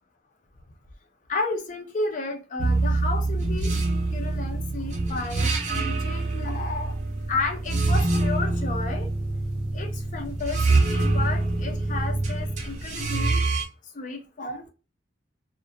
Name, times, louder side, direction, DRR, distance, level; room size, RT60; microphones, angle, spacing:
voice 1, 1.3-3.7 4.1-7.0 7.3-9.1 9.7-13.5 13.9-14.7, left 3 dB, 40° left, 0.4 m, -32 dB
sound 1, 2.6-13.6, right 2 dB, 40° right, 0.4 m, -25 dB
2.3 x 2.1 x 2.5 m
head